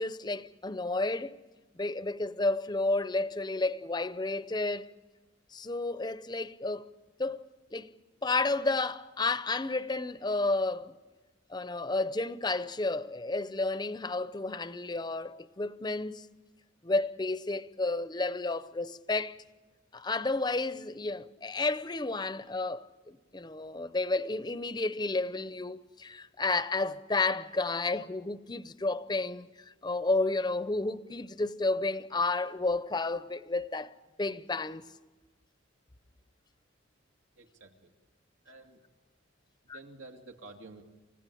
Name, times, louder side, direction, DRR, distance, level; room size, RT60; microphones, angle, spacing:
voice 1, 0.0-1.4 1.8-4.9 5.5-6.9 7.2-7.9 8.2-10.9 11.5-16.2 16.8-19.4 19.9-29.5 29.8-33.9 34.2-34.9 39.7-39.8, left 3 dB, 20° left, 0.6 m, -31 dB
voice 2, 37.4-37.9 38.4-38.8 39.6-40.8, right 2 dB, 90° right, 2.3 m, -50 dB
29.0 x 16.0 x 8.5 m
head